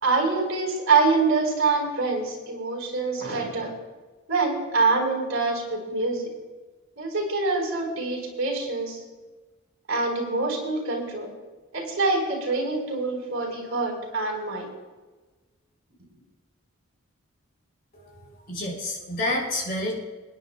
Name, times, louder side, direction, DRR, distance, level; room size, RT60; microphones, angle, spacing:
voice 1, 0.0-3.7 4.3-6.3 7.0-9.0 9.9-11.3 11.7-14.7, right 3 dB, 75° right, 1 dB, 4.1 m, -25 dB
voice 2, 17.9-20.0, left 1 dB, 45° left, -1 dB, 4.1 m, -29 dB
26.5 x 10.0 x 2.2 m, 1.3 s
head